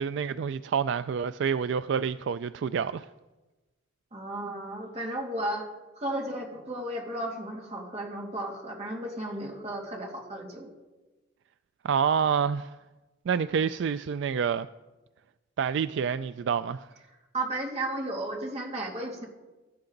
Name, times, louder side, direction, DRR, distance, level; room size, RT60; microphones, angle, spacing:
voice 1, 0.0-3.1 11.8-12.7 13.3-14.7 15.6-16.9, right 7 dB, 65° right, 0.3 m, -28 dB
voice 2, 4.1-5.7 6.0-10.7 17.3-19.3, right 1 dB, 35° right, 2.5 m, -34 dB
16.5 x 12.5 x 3.9 m
head